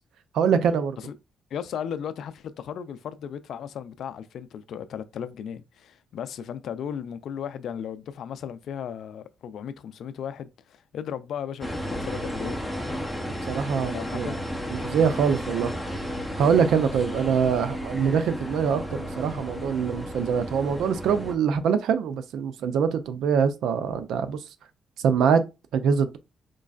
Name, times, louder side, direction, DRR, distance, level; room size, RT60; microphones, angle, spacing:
voice 1, 0.3-1.0 13.5-14.3 14.7-15.7 16.4-24.4 25.0-25.4 25.7-26.2, right 7 dB, 80° right, 0.5 m, -24 dB
voice 2, 1.5-12.6 13.9-14.3, left 8 dB, 70° left, 0.4 m, -36 dB
sound 1, 11.6-21.4, equal, 5° left, 0.8 m, -33 dB
3.8 x 3.1 x 2.4 m
cardioid pair, 90°, 0 cm